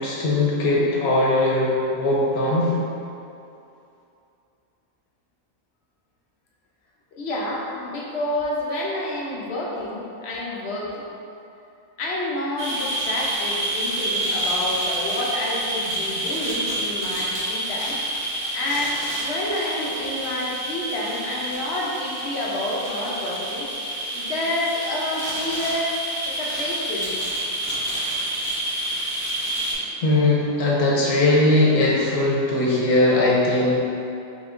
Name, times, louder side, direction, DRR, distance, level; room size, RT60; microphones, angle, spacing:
voice 1, 0.0-2.7 30.0-33.7, left 2 dB, 90° left, -4 dB, 1.3 m, -20 dB
voice 2, 7.2-11.0 12.0-18.0 18.5-23.7 24.1-27.2 29.5-30.0, left 1 dB, 55° left, -3 dB, 0.8 m, -29 dB
sound 1, 12.6-29.7, right 1 dB, 70° right, 1.6 m, -28 dB
4.9 x 3.5 x 2.5 m, 2.7 s
omnidirectional pair, 1.5 m